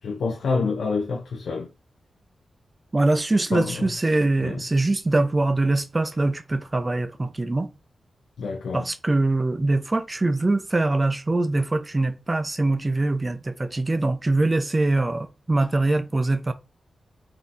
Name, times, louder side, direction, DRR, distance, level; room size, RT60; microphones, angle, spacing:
voice 1, 0.0-1.7 3.5-3.9 4.4-4.6 8.4-8.9, left 4 dB, 90° left, 0.5 m, -27 dB
voice 2, 2.9-7.7 8.7-16.5, right 2 dB, 25° right, 0.4 m, -23 dB
3.8 x 2.8 x 2.5 m
wide cardioid pair, 85°, 0 cm